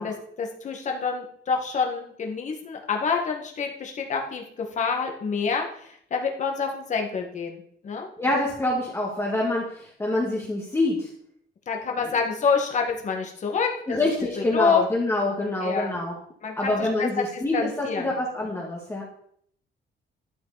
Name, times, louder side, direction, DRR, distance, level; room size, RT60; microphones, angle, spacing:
voice 1, 0.0-8.1 11.7-14.0 14.5-14.8 15.6-15.9 16.4-18.1, left 5 dB, 40° left, 2 dB, 1.8 m, -27 dB
voice 2, 8.2-11.1 13.9-16.1 16.6-19.0, left 2 dB, 15° left, -3 dB, 1.8 m, -26 dB
12.0 x 7.8 x 4.1 m, 0.66 s
cardioid pair, 155°, 19 cm